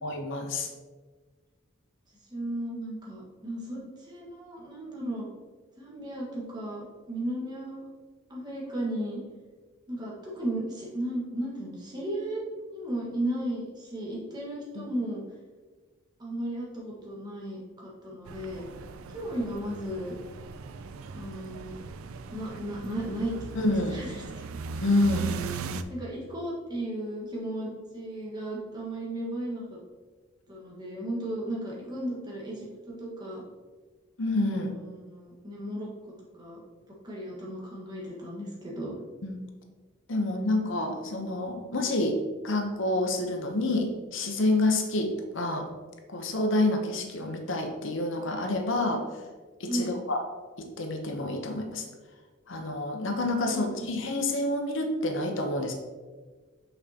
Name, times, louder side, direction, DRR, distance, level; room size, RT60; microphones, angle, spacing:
voice 1, 0.0-0.7 14.7-14.9 23.5-24.0 24.8-25.3 34.2-34.7 39.2-39.4 40.1-45.7 46.1-49.0 49.6-50.2 50.6-51.8 52.5-55.7, left 2 dB, 65° left, 4 dB, 0.7 m, -28 dB
voice 2, 2.3-5.3 5.8-7.8 8.3-9.2 9.9-12.4 12.7-15.2 16.2-18.6 19.1-20.1 21.1-21.8 22.3-24.6 25.9-29.8 30.5-33.4 34.9-35.9 36.4-36.6 37.0-38.9 49.7-50.0 53.4-53.9, right 1 dB, 20° right, -4 dB, 1.4 m, -35 dB
sound 1, 18.3-25.8, right 5 dB, 85° right, 0.4 m, -39 dB
6.8 x 5.4 x 2.8 m, 1.4 s
head